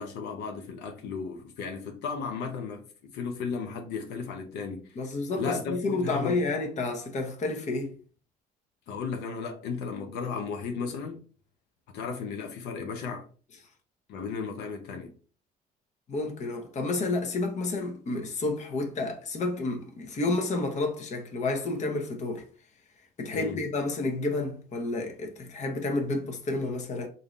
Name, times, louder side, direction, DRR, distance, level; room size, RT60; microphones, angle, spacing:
voice 1, 0.0-5.0 5.4-6.4 8.9-11.2 11.9-13.3 14.1-15.1 23.3-23.6, left 5 dB, 85° left, 0.7 m, -35 dB
voice 2, 4.9-8.0 16.1-22.4 23.2-27.1, left 2 dB, 45° left, 0.9 m, -30 dB
3.6 x 2.7 x 3.1 m
cardioid pair, 110°, 17 cm